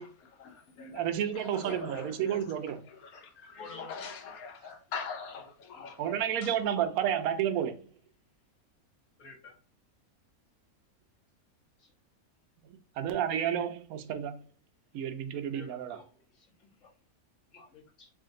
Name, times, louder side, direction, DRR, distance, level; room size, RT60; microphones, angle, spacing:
voice 1, 0.0-1.1 1.3-2.6 2.9-6.6, left 5 dB, 85° left, 1.3 m, -43 dB
voice 2, 0.9-2.8 6.0-7.8 13.0-14.4 14.9-16.0, right 9 dB, 85° right, 1.0 m, -31 dB
voice 3, 3.6-3.9 9.2-9.6 11.8-11.9 15.5-16.9 17.5-18.1, left 4 dB, 60° left, 1.4 m, -51 dB
3.6 x 2.5 x 3.7 m
omnidirectional pair, 1.5 m